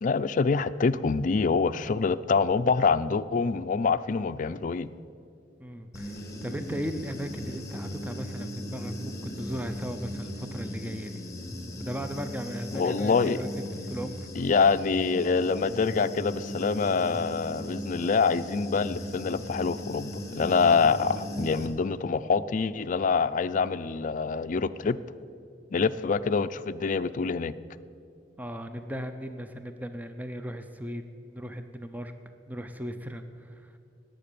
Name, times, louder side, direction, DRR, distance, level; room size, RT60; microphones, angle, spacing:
voice 1, 0.0-4.9 12.7-13.4 14.4-25.0 25.7-27.5, left 5 dB, 45° left, 11 dB, 0.4 m, -25 dB
voice 2, 5.6-11.3 11.8-14.2 25.8-26.0 28.4-32.1 32.5-33.8, equal, 10° right, 8 dB, 0.5 m, -37 dB
Human voice / Buzz, 5.9-21.7, equal, 20° left, 2.0 m, -38 dB
19.0 x 7.7 x 6.8 m, 2.5 s
head